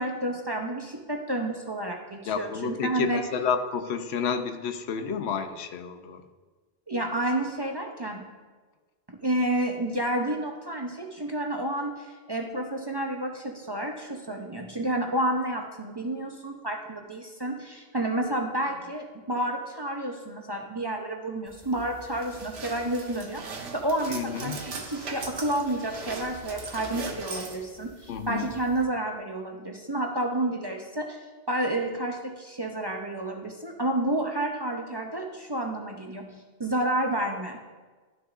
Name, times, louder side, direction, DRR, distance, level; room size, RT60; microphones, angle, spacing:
voice 1, 0.0-3.2 6.9-8.3 9.1-31.2 31.5-37.6, right 1 dB, 30° right, 2 dB, 0.5 m, -30 dB
voice 2, 2.3-6.2 24.1-24.6 28.1-28.5, left 6 dB, 85° left, 8 dB, 0.9 m, -30 dB
sound 1, 21.5-28.8, right 3 dB, 80° right, 1.2 m, -40 dB
12.0 x 6.3 x 2.4 m, 1.3 s
omnidirectional pair, 1.1 m